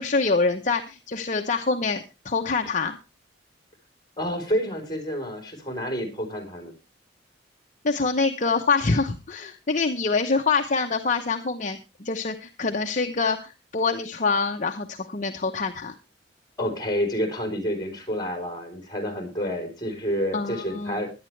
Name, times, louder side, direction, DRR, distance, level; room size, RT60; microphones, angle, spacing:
voice 1, 0.0-3.0 7.8-15.9 20.3-21.0, left 4 dB, 45° left, 5 dB, 0.9 m, -25 dB
voice 2, 4.2-6.7 16.6-21.1, equal, 20° left, 5 dB, 3.9 m, -29 dB
17.0 x 11.0 x 3.3 m, 0.28 s
head